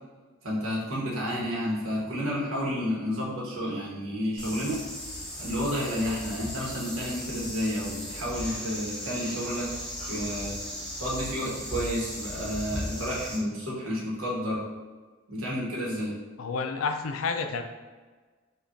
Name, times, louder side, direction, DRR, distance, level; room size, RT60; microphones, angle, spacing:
voice 1, 0.4-4.8 5.4-9.7 10.1-10.6 11.0-14.6 15.3-16.2, equal, 75° right, -5 dB, 1.2 m, -31 dB
sound 1, 4.4-13.4, equal, 5° left, 0.7 m, -37 dB
voice 2, 16.4-17.6, left 4 dB, 70° left, 6 dB, 0.4 m, -30 dB
5.0 x 2.4 x 2.6 m, 1.4 s
head